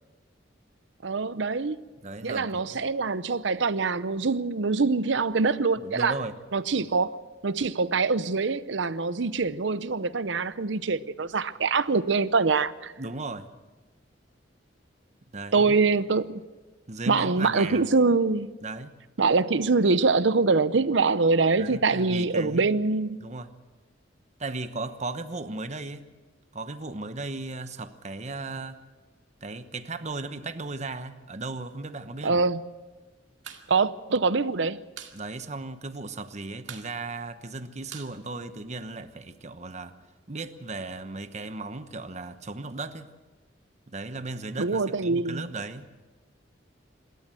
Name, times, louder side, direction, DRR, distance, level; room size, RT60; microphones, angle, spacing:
voice 1, 1.0-1.8 2.2-6.1 6.5-12.9 15.5-16.4 17.1-18.5 19.2-23.2 32.2-32.6 33.7-34.8 44.6-45.5, right 4 dB, 70° right, 0.7 m, -24 dB
voice 2, 2.0-2.8 5.8-6.3 6.8-6.9 13.0-13.5 15.3-15.8 16.9-17.9 18.6-19.0 21.6-22.7 23.2-23.5 24.4-26.1 26.5-28.8 29.4-32.4 35.1-39.9 40.3-43.1 43.9-45.9, right 3 dB, 40° right, 1.1 m, -36 dB
sound 1, 33.3-33.7 33.9-34.0 34.3-35.2 35.5-35.6 35.9-36.3 36.6-39.0, right 8 dB, 85° right, 2.3 m, -44 dB
26.5 x 13.5 x 7.7 m
head